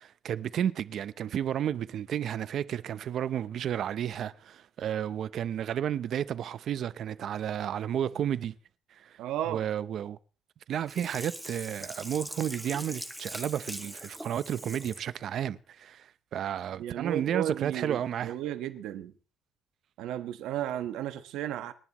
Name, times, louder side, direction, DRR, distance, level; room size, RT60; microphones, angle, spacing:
voice 1, 0.0-8.5 8.9-9.2 9.5-10.2 10.7-18.4, right 10 dB, 50° right, 0.7 m, -32 dB
voice 2, 9.2-9.6 16.8-19.1 20.0-21.7, right 11 dB, 85° right, 1.3 m, -34 dB
Sink (filling or washing), 10.9-15.1 15.5-15.6, equal, ahead, 1.6 m, -41 dB
29.0 x 11.0 x 3.1 m
cardioid pair, 160°, 0 cm